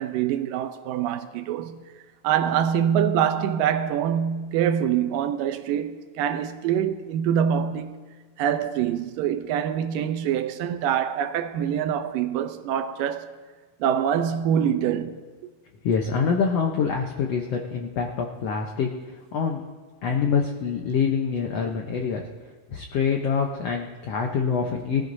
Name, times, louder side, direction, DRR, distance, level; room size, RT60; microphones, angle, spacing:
voice 1, 0.0-1.9 2.2-8.0 8.4-13.3 13.8-15.3, right 9 dB, 80° right, 2.3 m, -25 dB
voice 2, 15.8-18.9 19.3-19.6 20.0-22.2 22.7-25.1, left 6 dB, 80° left, 1.4 m, -25 dB
22.5 x 14.5 x 2.6 m
omnidirectional pair, 4.0 m